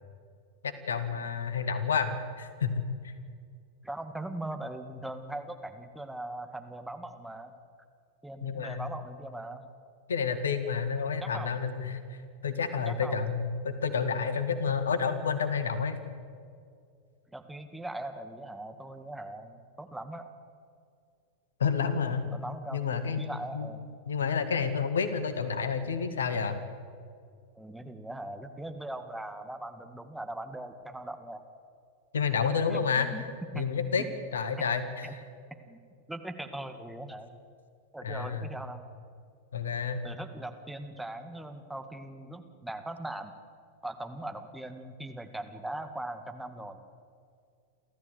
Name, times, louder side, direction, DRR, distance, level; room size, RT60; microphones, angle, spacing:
voice 1, 0.6-2.1 2.4-3.1 8.4-8.9 10.1-12.2 12.4-16.0 21.6-22.3 22.7-23.3 23.5-23.7 24.1-26.6 32.1-33.2 33.5-34.0 34.3-35.1 38.0-38.5 39.5-40.0, left 6 dB, 65° left, 11 dB, 1.9 m, -30 dB
voice 2, 3.8-7.5 8.2-9.6 11.2-11.6 12.7-13.2 17.3-20.3 22.3-23.9 27.6-31.4 32.7-33.2 33.5-33.6 34.0-34.1 35.0-35.1 35.7-35.8 36.1-37.4 37.9-38.8 40.0-43.3 43.8-46.8, right 1 dB, 5° right, 6 dB, 1.9 m, -40 dB
29.5 x 14.0 x 8.2 m, 2.3 s
figure-of-eight pair, 90°, 0 cm